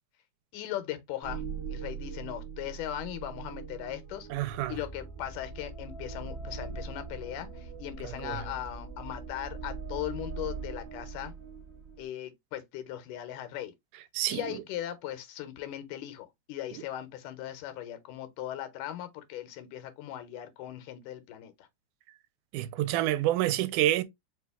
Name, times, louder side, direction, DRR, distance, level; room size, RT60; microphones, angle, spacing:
voice 1, 0.5-1.4 1.7-11.3 12.0-13.7 14.3-21.7, left 12 dB, 85° left, 2.3 m, -39 dB
sound 1, 1.2-12.0, right 5 dB, 55° right, 0.6 m, -41 dB
voice 2, 4.3-4.8 8.0-8.4 14.1-14.4 22.5-24.0, right 14 dB, 85° right, 2.1 m, -28 dB
4.9 x 2.3 x 3.4 m
omnidirectional pair, 3.6 m